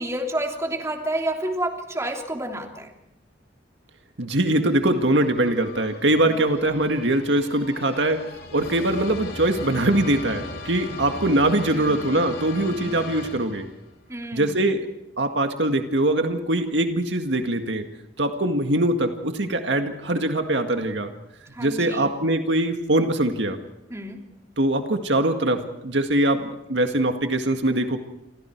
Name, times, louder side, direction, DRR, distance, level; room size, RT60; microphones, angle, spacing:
voice 1, 0.0-2.9 6.2-6.5 11.7-12.1 12.7-13.0 14.1-14.6 21.5-22.1 23.9-24.2, right 1 dB, 15° right, 2 dB, 3.1 m, -30 dB
voice 2, 4.2-8.2 8.5-13.7 14.3-14.8 15.2-17.8 18.2-21.1 21.6-23.6 24.6-28.0, right 1 dB, 70° right, 6 dB, 1.9 m, -22 dB
sound 1, 4.5-14.0, left 2 dB, 55° left, 2.8 m, -38 dB
29.0 x 26.5 x 4.7 m, 0.87 s
head